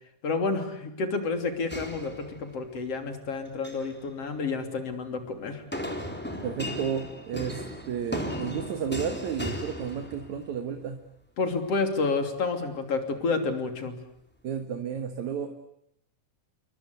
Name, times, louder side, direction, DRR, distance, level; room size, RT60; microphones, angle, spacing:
voice 1, 0.2-5.6 11.4-14.0, left 4 dB, 45° left, 7 dB, 3.9 m, -29 dB
sound 1, 1.7-2.8 3.5-3.9 5.7-10.5, left 1 dB, 5° left, 3.2 m, -36 dB
voice 2, 6.4-11.0 14.4-15.5, right 7 dB, 60° right, 7 dB, 2.7 m, -32 dB
29.0 x 22.5 x 8.2 m, 0.74 s
omnidirectional pair, 4.0 m